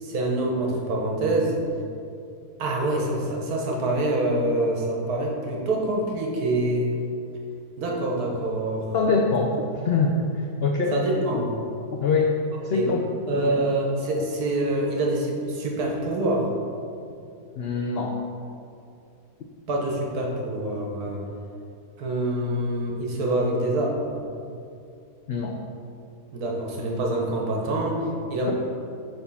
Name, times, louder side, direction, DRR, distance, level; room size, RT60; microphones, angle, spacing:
voice 1, 0.0-1.5 2.6-6.9 7.8-8.9 10.9-11.5 12.7-12.9 13.3-16.5 19.7-21.2 22.0-24.1 26.3-28.5, right 1 dB, 70° right, -1 dB, 1.5 m, -25 dB
voice 2, 8.9-9.5 9.8-10.9 12.0-12.3 12.6-13.0 13.4-13.6 17.6-18.2 25.3-25.6, left 4 dB, 80° left, 1 dB, 0.5 m, -24 dB
6.9 x 3.8 x 5.4 m, 2.5 s
omnidirectional pair, 1.7 m